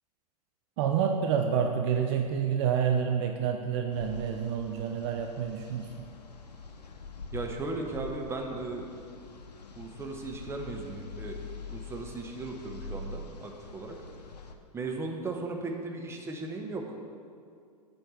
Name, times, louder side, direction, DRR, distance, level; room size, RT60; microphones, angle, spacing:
voice 1, 0.8-6.1, right 7 dB, 45° right, 4 dB, 0.6 m, -28 dB
sound 1, 3.9-14.5, left 4 dB, 80° left, 0.7 m, -44 dB
voice 2, 7.3-8.9 9.8-11.4 11.7-14.0 14.7-17.0, right 3 dB, 10° right, 2 dB, 1.0 m, -37 dB
7.8 x 4.5 x 6.9 m, 2.3 s
hypercardioid pair, 105°, 21 cm